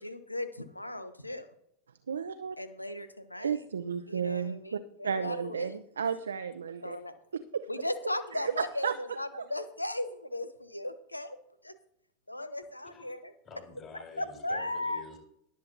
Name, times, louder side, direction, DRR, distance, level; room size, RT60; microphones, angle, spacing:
voice 1, 0.0-1.5 2.6-3.6 4.1-5.8 6.8-7.1 7.7-11.4 11.6-11.7 12.3-13.3 14.2-15.0, left 1 dB, 85° left, 13 dB, 0.9 m, -37 dB
voice 2, 2.1-2.6 3.4-7.0 7.3-7.7 8.3-8.9 9.3-9.5, right 7 dB, 70° right, 11 dB, 0.5 m, -33 dB
voice 3, 13.4-15.2, left 4 dB, 30° left, 1 dB, 4.4 m, -49 dB
21.5 x 7.5 x 2.9 m, 0.74 s
figure-of-eight pair, 85°, 0 cm